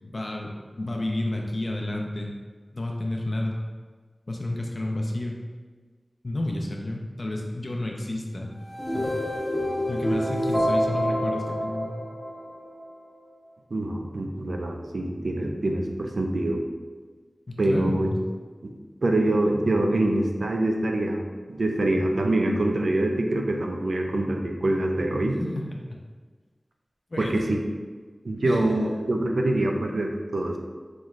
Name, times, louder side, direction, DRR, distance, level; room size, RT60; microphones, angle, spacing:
voice 1, 0.0-2.3 2.7-3.6 4.3-5.4 6.2-8.5 8.9-9.2 9.9-12.0 17.5-18.2 25.4-25.7 27.1-27.3 28.4-28.6, left 1 dB, 60° left, 0 dB, 0.6 m, -31 dB
sound 1, 8.6-12.9, equal, 10° left, 1.2 m, -27 dB
voice 2, 13.7-16.6 17.6-18.1 18.6-18.7 19.0-21.2 21.5-25.4 27.2-27.6 28.2-30.6, right 1 dB, 85° right, 2 dB, 0.4 m, -25 dB
4.2 x 3.1 x 2.4 m, 1.4 s
wide cardioid pair, 45°, 0 cm